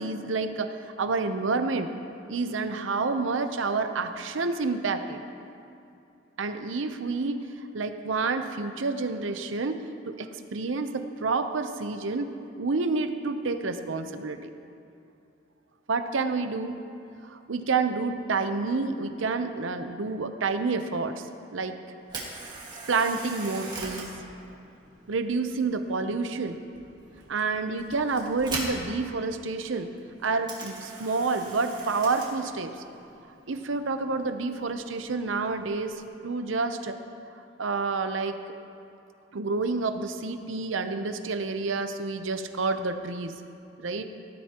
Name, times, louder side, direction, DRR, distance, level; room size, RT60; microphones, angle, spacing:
voice 1, 0.0-1.9 2.3-5.2 6.4-7.4 7.7-9.8 10.0-12.3 12.6-14.5 15.9-16.8 17.2-21.3 21.5-21.8 22.9-24.2 25.1-26.6 27.3-29.9 30.2-32.7 33.5-37.0 37.6-38.4 39.3-43.4 43.8-44.0, right 4 dB, 90° right, 8 dB, 0.7 m, -29 dB
Camera, 22.0-36.1, right 2 dB, 20° right, 1.8 m, -42 dB
17.5 x 11.5 x 3.0 m, 2.6 s
head